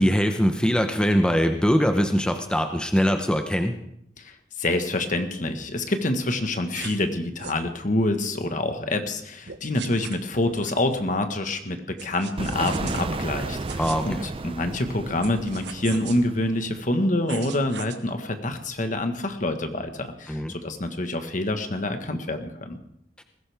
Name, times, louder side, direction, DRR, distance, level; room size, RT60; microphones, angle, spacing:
voice 1, 0.0-3.8 13.8-14.2 20.3-20.5, equal, 5° left, 6 dB, 0.8 m, -22 dB
voice 2, 4.6-14.2 14.4-22.8, left 1 dB, 45° left, 7 dB, 1.5 m, -26 dB
sound 1, 6.7-7.0 7.4-7.6 9.5-11.0 12.0-13.2 13.6-14.0 15.2-16.2 17.3-18.0, right 7 dB, 80° right, 1.2 m, -40 dB
sound 2, 12.4-17.0, right 2 dB, 30° right, 0.5 m, -33 dB
20.5 x 16.0 x 3.5 m, 0.74 s
head